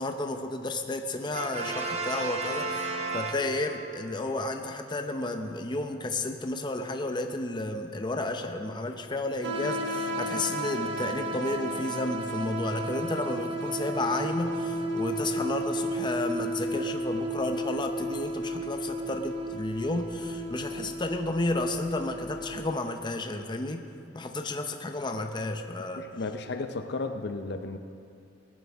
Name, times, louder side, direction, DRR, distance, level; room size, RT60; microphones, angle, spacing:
voice 1, 0.0-23.9 24.1-26.1, left 2 dB, 25° left, 5 dB, 0.7 m, -32 dB
Brass instrument, 1.3-4.0, right 3 dB, 35° right, 1.0 m, -33 dB
sound 1, 9.4-22.7, right 1 dB, 70° right, 1.3 m, -33 dB
voice 2, 26.0-27.8, left 3 dB, 65° left, 7 dB, 0.6 m, -34 dB
18.5 x 10.5 x 3.5 m, 2.6 s
head